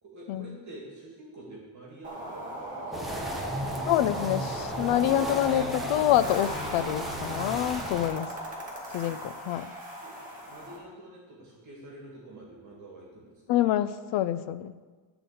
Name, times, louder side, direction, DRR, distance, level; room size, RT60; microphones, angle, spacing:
voice 1, 0.0-2.9 3.5-3.8 9.1-9.5 10.0-10.1 10.4-13.4, right 1 dB, 35° right, -3 dB, 2.1 m, -48 dB
sound 1, 2.0-10.8, right 1 dB, 15° right, 2.2 m, -37 dB
sound 2, 2.9-8.1, equal, ahead, 0.8 m, -36 dB
voice 2, 3.9-8.3 8.9-9.7 13.5-14.7, left 12 dB, 70° left, 14 dB, 0.6 m, -26 dB
12.0 x 4.0 x 6.8 m, 1.4 s
cardioid pair, 165°, 48 cm